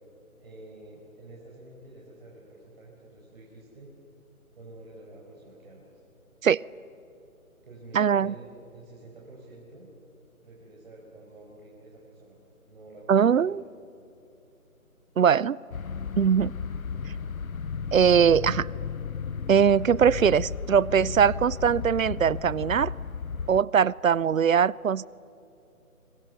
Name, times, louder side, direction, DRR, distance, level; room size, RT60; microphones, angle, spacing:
voice 1, 0.4-3.9 4.5-5.9 7.6-9.9 10.4-12.3 12.7-13.6, right 2 dB, 40° right, -4 dB, 5.4 m, -48 dB
voice 2, 7.9-8.3 13.1-13.6 15.2-15.6 16.2-16.5 17.9-18.7 19.5-22.9 23.5-25.1, right 7 dB, 65° right, 24 dB, 0.6 m, -21 dB
sound 1, 15.7-23.6, left 6 dB, 70° left, 1.0 m, -34 dB
29.0 x 26.0 x 7.0 m, 2.7 s
figure-of-eight pair, 165°, 43 cm